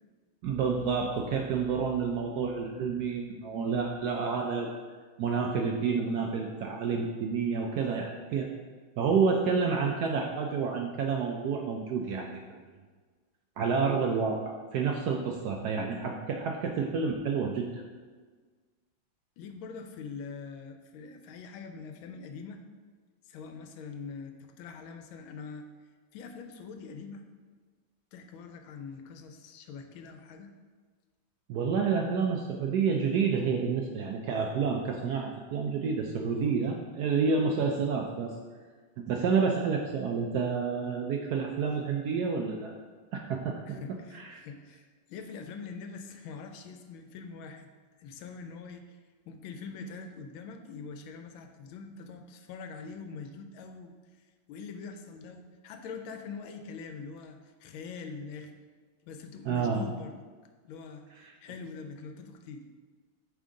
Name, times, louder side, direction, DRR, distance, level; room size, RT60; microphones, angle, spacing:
voice 1, 0.4-4.7 5.2-8.5 9.0-12.4 13.6-17.8 31.5-38.3 39.1-42.7 43.1-43.8 44.1-44.4 59.5-59.8 61.2-61.3, right 5 dB, 75° right, 1 dB, 0.9 m, -29 dB
voice 2, 19.4-22.6 23.3-25.7 26.1-27.3 28.1-30.5 36.3-36.6 43.7-47.7 48.0-49.0 49.2-53.9 54.5-58.5 59.0-60.2 60.6-62.7, left 5 dB, 85° left, 6 dB, 1.4 m, -43 dB
8.7 x 3.7 x 3.7 m, 1.5 s
omnidirectional pair, 2.2 m